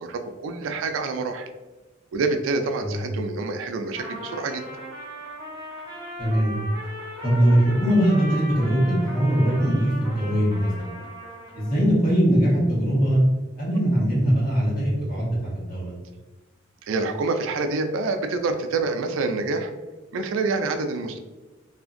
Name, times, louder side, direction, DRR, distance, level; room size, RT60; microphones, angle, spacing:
voice 1, 0.0-1.5 2.1-4.6 16.8-19.7 20.1-21.2, right 3 dB, 80° right, 7 dB, 0.3 m, -27 dB
Trumpet, 4.0-11.8, equal, 25° right, 1.2 m, -37 dB
voice 2, 6.2-6.7 7.2-11.0 11.5-13.2 13.6-15.9, equal, 45° left, -7 dB, 1.2 m, -21 dB
2.7 x 2.5 x 2.4 m, 1.2 s
head